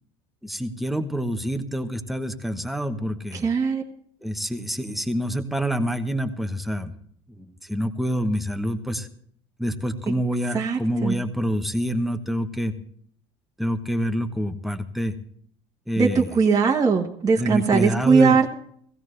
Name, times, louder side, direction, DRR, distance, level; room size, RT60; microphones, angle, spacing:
voice 1, 0.4-3.5 4.2-6.9 7.4-9.1 9.6-12.7 13.6-15.1 15.9-16.4 16.9-17.0 17.4-18.5, equal, ahead, 6 dB, 1.0 m, -27 dB
voice 2, 3.4-3.8 10.5-11.1 16.0-18.5, right 5 dB, 20° right, 0 dB, 1.3 m, -20 dB
16.5 x 16.0 x 3.2 m, 0.63 s
supercardioid pair, 115°, 17 cm